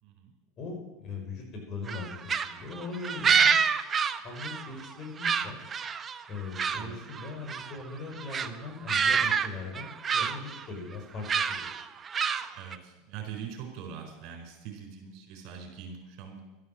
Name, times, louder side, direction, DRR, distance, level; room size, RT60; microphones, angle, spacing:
voice 1, 0.0-0.3 6.8-6.9 12.6-16.4, right 7 dB, 60° right, 3 dB, 4.4 m, -42 dB
voice 2, 0.6-2.2 2.4-3.3 4.2-5.6 6.3-11.7, left 3 dB, 45° left, 1 dB, 5.8 m, -40 dB
sound 1, 1.9-4.9 5.2-6.9 7.1-7.8 8.2-8.5 8.9-9.5 9.7-10.6 11.2-12.8, right 6 dB, 30° right, 0.9 m, -27 dB
12.5 x 11.0 x 7.6 m, 1.1 s
hypercardioid pair, 100°, 0 cm